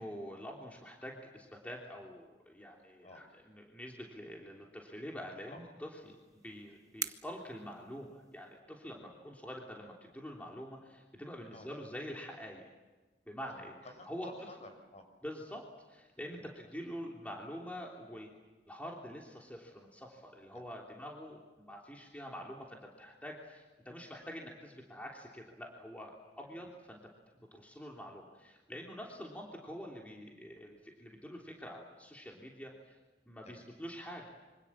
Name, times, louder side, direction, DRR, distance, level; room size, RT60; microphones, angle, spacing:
voice 1, 0.0-6.2 6.4-12.7 13.3-13.7 14.1-14.3 15.2-18.3 18.7-27.0 27.3-33.0 33.2-34.3, equal, 10° left, -1 dB, 3.2 m, -46 dB
sound 1, 5.9-8.6, right 5 dB, 20° right, 1.1 m, -46 dB
voice 2, 13.4-15.1 16.3-16.5 20.5-20.7 26.5-26.7 29.1-29.2 33.4-33.6, left 2 dB, 40° left, 6 dB, 5.6 m, -53 dB
26.5 x 25.5 x 7.4 m, 1.2 s
head